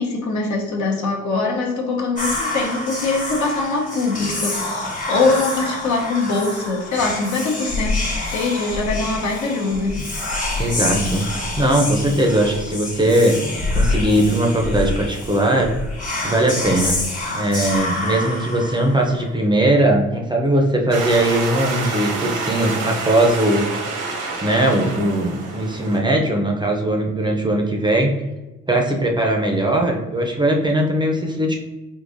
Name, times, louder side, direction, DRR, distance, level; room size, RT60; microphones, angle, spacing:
voice 1, 0.0-10.1, left 3 dB, 70° left, -1 dB, 0.9 m, -23 dB
Whispering, 2.2-19.3, left 2 dB, 25° left, 0.9 m, -26 dB
voice 2, 10.6-13.4 13.7-15.7 16.2-16.9 17.3-23.7 24.4-28.1 28.7-31.5, right 1 dB, 15° right, 1 dB, 0.5 m, -19 dB
sound 1, 20.9-26.0, right 3 dB, 80° right, 0.9 m, -27 dB
3.8 x 2.7 x 2.5 m, 1.1 s
cardioid pair, 90°, 30 cm